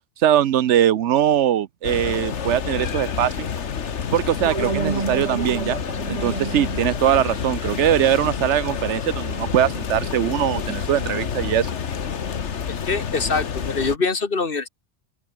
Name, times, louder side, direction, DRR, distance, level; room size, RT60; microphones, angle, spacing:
voice 1, 0.2-3.5 4.1-5.8 6.1-11.7, right 10 dB, 90° right, 1.1 m, -21 dB
sound 1, 1.8-14.0, left 7 dB, 85° left, 1.6 m, -28 dB
sound 2, 4.4-9.4, right 5 dB, 35° right, 1.1 m, -32 dB
voice 2, 12.9-14.7, left 4 dB, 55° left, 1.9 m, -24 dB
open air
omnidirectional pair, 1.2 m